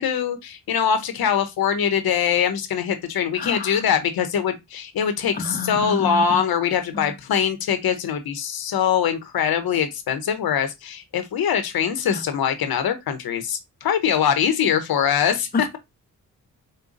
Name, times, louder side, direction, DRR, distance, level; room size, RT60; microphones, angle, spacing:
voice 1, 0.0-15.8, left 8 dB, 75° left, 0.8 m, -23 dB
voice 2, 3.4-3.7 5.4-6.2 6.9-7.0 12.1-12.2, left 4 dB, 25° left, 0.6 m, -29 dB
5.0 x 2.2 x 2.6 m
supercardioid pair, 50°, 37 cm